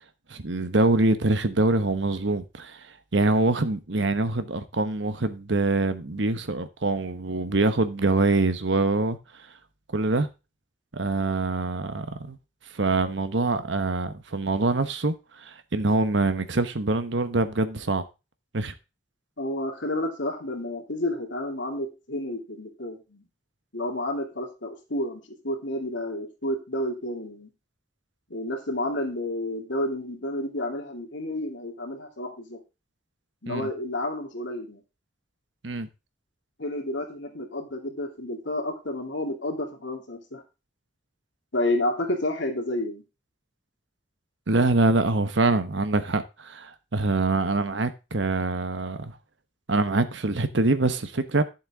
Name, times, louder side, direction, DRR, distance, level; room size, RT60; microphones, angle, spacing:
voice 1, 0.3-9.2 9.9-10.3 10.9-12.4 12.7-15.1 15.4-18.0 18.5-18.7 33.5-33.7 35.6-35.9 44.5-49.1 49.7-51.4, right 2 dB, 70° right, 1.1 m, -24 dB
voice 2, 19.4-23.2 23.7-27.5 28.3-32.6 33.4-34.8 36.6-40.4 41.5-43.0, left 1 dB, 75° left, 2.7 m, -30 dB
11.5 x 7.3 x 3.7 m
head